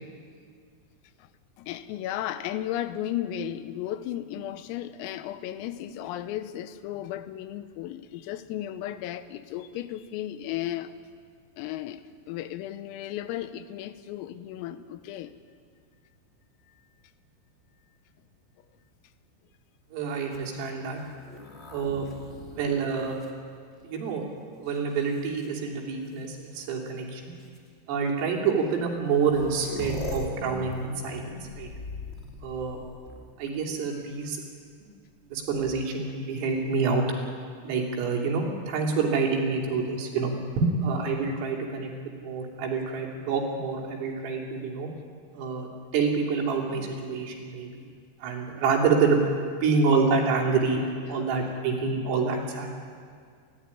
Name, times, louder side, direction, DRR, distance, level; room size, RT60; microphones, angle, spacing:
voice 1, 1.6-11.0 11.6-15.4 16.7-16.8 21.4-22.0 51.0-51.3, left 12 dB, 90° left, 12 dB, 3.7 m, -35 dB
voice 2, 19.9-21.0 21.7-22.1 22.5-23.2 23.8-24.2 24.6-27.3 27.9-31.7 32.4-32.8 33.4-34.4 35.3-37.1 37.6-41.9 42.2-44.9 45.3-47.9 48.2-50.8 51.1-52.7, right 4 dB, 80° right, 0 dB, 5.7 m, -27 dB
sound 1, 20.2-24.1 24.7-25.5 26.6-26.7 27.4-27.6 28.7-28.8 29.0-33.5 35.4-36.1, left 1 dB, 25° left, 1.5 m, -40 dB
29.0 x 14.0 x 9.9 m, 2.1 s
omnidirectional pair, 5.9 m